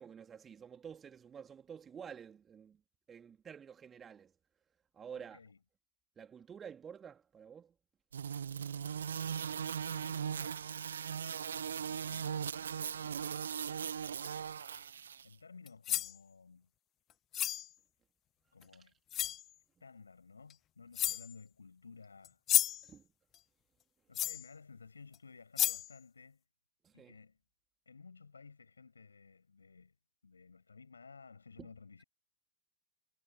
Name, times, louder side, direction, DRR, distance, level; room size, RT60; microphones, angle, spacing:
voice 1, 0.0-2.8 3.1-4.3 4.9-5.4 6.2-7.7 18.7-18.9 22.8-23.1 26.8-27.2 31.6-31.7, right 7 dB, 20° right, 2.6 m, -50 dB
voice 2, 5.1-5.6 9.5-10.7 11.9-13.3 15.2-16.7 18.5-18.9 19.8-22.4 24.1-26.4 26.9-27.4 27.9-30.0 30.2-32.0, left 5 dB, 75° left, 7.4 m, -56 dB
sound 1, 8.1-15.3, right 7 dB, 70° right, 0.7 m, -39 dB
sound 2, 15.7-16.2 17.3-17.7 18.6-18.7 19.1-19.4 20.5-20.6 20.9-21.3 22.2-22.9 24.1-24.5 25.1-25.2 25.6-25.9, left 12 dB, 30° left, 0.4 m, -32 dB
figure-of-eight pair, 90°, 0 cm